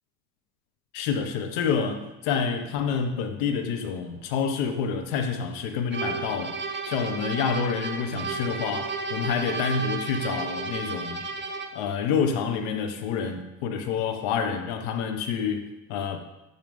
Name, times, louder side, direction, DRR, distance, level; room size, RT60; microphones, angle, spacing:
voice 1, 0.9-6.5 6.8-11.2 11.7-16.2, left 6 dB, 65° left, 7 dB, 1.2 m, -28 dB
sound 1, 5.9-11.8, right 4 dB, 25° right, 1.3 m, -33 dB
12.0 x 7.3 x 3.8 m, 0.99 s
hypercardioid pair, 75°, 47 cm